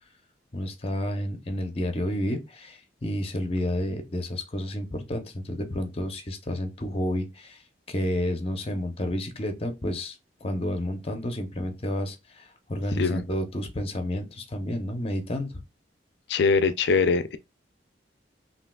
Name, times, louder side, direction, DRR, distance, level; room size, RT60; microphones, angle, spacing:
voice 1, 0.5-7.6 7.9-10.2 10.4-15.5, left 1 dB, 35° left, 0.7 m, -30 dB
voice 2, 16.3-17.4, left 4 dB, 70° left, 0.4 m, -22 dB
5.6 x 2.8 x 2.3 m
head